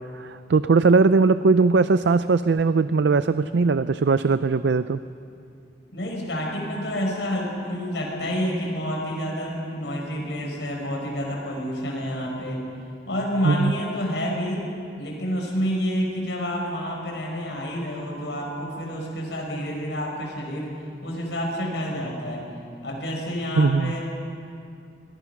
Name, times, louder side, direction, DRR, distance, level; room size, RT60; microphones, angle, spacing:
voice 1, 0.0-5.0 13.4-13.7 23.6-23.9, right 4 dB, 80° right, 13 dB, 0.5 m, -20 dB
voice 2, 5.9-12.7 13.1-14.7 15.0-20.7 21.0-22.4 22.8-24.0, equal, 80° left, 0 dB, 6.1 m, -28 dB
27.5 x 21.5 x 6.0 m, 2.5 s
head